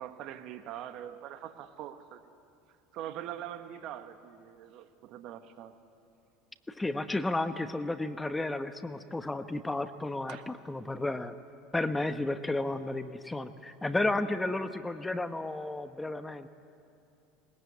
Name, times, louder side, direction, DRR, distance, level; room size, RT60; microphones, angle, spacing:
voice 1, 0.0-2.2 2.9-5.7 10.3-10.4, right 11 dB, 60° right, 9 dB, 1.4 m, -43 dB
voice 2, 6.7-11.4 11.7-16.5, left 2 dB, 10° left, 10 dB, 1.0 m, -32 dB
21.0 x 19.5 x 8.6 m, 2.6 s
hypercardioid pair, 85°, 0 cm